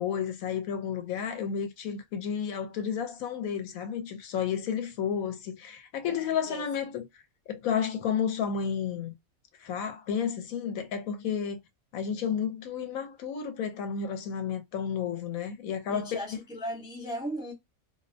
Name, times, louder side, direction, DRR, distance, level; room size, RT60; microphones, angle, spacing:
voice 1, 0.0-7.1 7.5-9.1 9.6-11.6 11.9-16.4, left 7 dB, 80° left, 1.0 m, -31 dB
voice 2, 6.0-6.6 15.9-17.5, equal, 5° right, 0.6 m, -37 dB
2.5 x 2.0 x 2.6 m
omnidirectional pair, 1.5 m